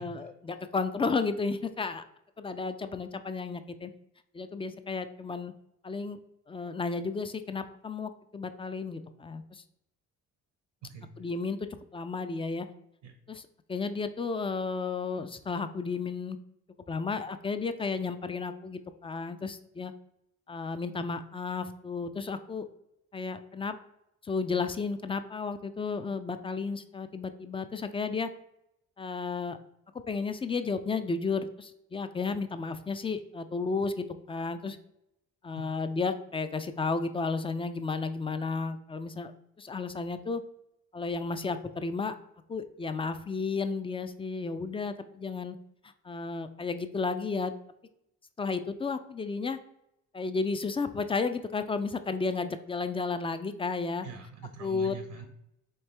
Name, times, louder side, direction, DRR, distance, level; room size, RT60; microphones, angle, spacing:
voice 1, 0.0-2.0 2.4-3.9 4.3-5.5 5.8-6.2 6.5-9.6 11.2-12.7 13.3-16.4 16.9-19.9 20.5-22.7 23.1-23.8 24.2-28.3 29.0-29.6 30.1-34.8 35.4-39.3 39.6-40.4 40.9-42.1 42.5-45.6 46.0-47.5 48.4-49.6 50.1-54.1 54.6-55.0, left 4 dB, 20° left, 10 dB, 0.3 m, -33 dB
voice 2, 54.0-55.3, right 5 dB, 80° right, 5 dB, 0.8 m, -44 dB
4.5 x 3.2 x 3.3 m, 0.83 s
cardioid pair, 90°, 30 cm